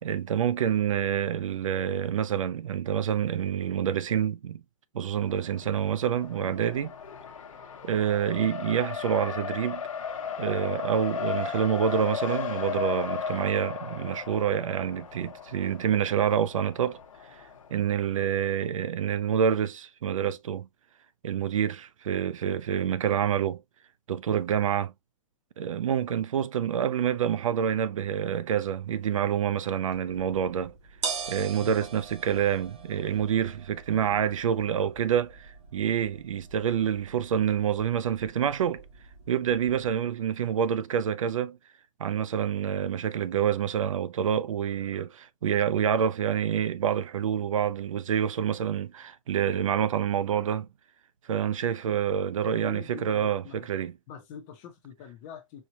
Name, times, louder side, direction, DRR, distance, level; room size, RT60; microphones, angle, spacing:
voice 1, 0.0-4.6 4.9-6.9 7.8-9.8 10.4-17.0 17.3-20.7 21.2-23.6 24.1-24.9 25.6-30.7 31.3-38.8 39.3-41.6 42.0-50.7 51.3-53.9, right 8 dB, 75° right, 0.5 m, -27 dB
Race car auto racing, 5.2-17.8, left 7 dB, 75° left, 1.0 m, -36 dB
sound 1, 29.9-40.0, right 5 dB, 55° right, 1.4 m, -42 dB
voice 2, 31.6-31.9 34.1-34.2 52.4-53.7 54.1-55.7, left 7 dB, 15° left, 0.6 m, -45 dB
4.5 x 2.2 x 2.7 m
hypercardioid pair, 175°, 17 cm